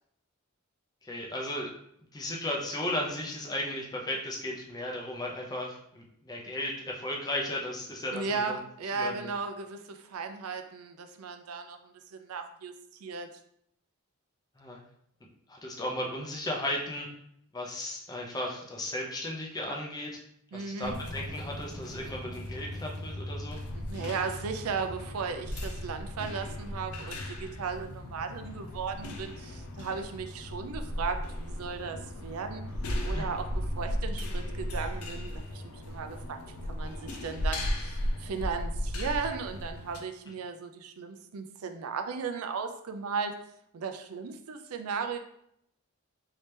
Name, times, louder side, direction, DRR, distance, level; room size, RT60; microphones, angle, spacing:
voice 1, 1.0-1.7 2.1-8.6 8.9-9.3 14.6-14.8 15.5-17.1 17.5-20.2 20.5-23.6 33.1-33.3, left 1 dB, 20° left, -1 dB, 0.5 m, -35 dB
voice 2, 8.1-12.7 13.0-13.3 20.5-21.0 23.7-32.6 33.0-43.3 43.7-45.2, right 5 dB, 90° right, 6 dB, 0.4 m, -36 dB
sound 1, 20.8-40.0, left 1 dB, 90° left, 0.5 m, -36 dB
3.2 x 2.8 x 3.3 m, 0.73 s
head